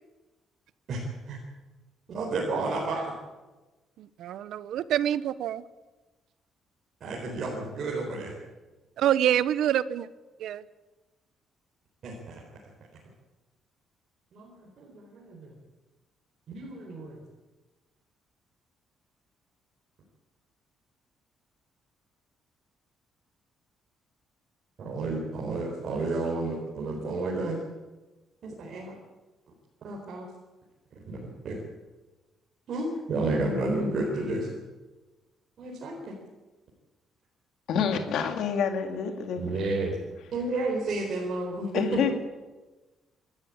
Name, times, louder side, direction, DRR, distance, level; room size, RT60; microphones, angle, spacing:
voice 1, 0.9-1.4 2.1-3.1 7.0-8.3 12.0-12.4 14.3-15.5 16.5-17.2 24.8-27.6 28.4-28.9 29.8-30.3 31.0-31.2 31.4-31.6 32.7-34.5 35.6-36.1 39.4-40.0 40.3-42.1, right 2 dB, 40° right, -3 dB, 4.4 m, -31 dB
voice 2, 4.0-5.6 9.0-10.1 10.4-10.6, right 11 dB, 65° right, 16 dB, 0.8 m, -26 dB
voice 3, 37.7-39.4 41.7-42.1, left 7 dB, 60° left, 6 dB, 2.2 m, -27 dB
27.0 x 13.0 x 8.7 m, 1.2 s
cardioid pair, 175°, 0 cm